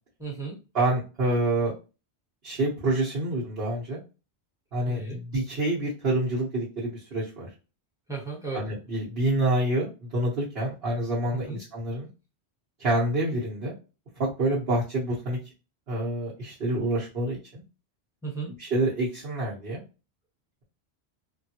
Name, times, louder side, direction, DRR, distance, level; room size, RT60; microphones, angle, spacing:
voice 1, 0.2-0.6 4.9-5.2 8.1-8.7 11.5-11.6 18.2-18.5, right 4 dB, 5° right, -2 dB, 1.1 m, -34 dB
voice 2, 0.7-1.7 2.4-4.0 4.7-7.5 8.5-12.1 12.8-13.7 14.2-15.4 15.9-17.6 18.6-19.8, right 1 dB, 65° right, -8 dB, 1.2 m, -27 dB
3.4 x 2.3 x 2.8 m, 0.31 s
omnidirectional pair, 1.1 m